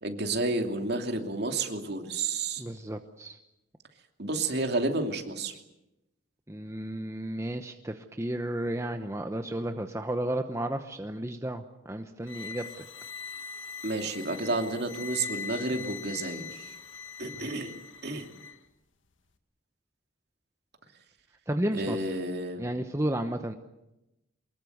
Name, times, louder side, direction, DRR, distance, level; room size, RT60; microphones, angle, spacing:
voice 1, 0.0-2.6 4.2-5.5 13.8-16.6 17.2-17.7 18.0-18.3 21.7-22.7, right 2 dB, 55° right, 4 dB, 2.8 m, -31 dB
voice 2, 2.6-3.4 6.5-12.7 17.3-17.5 21.5-22.2 22.6-23.5, right 1 dB, 15° right, 6 dB, 0.9 m, -33 dB
sound 1, 12.2-18.6, left 5 dB, 75° left, 1.8 m, -42 dB
24.0 x 21.0 x 8.0 m, 0.93 s
head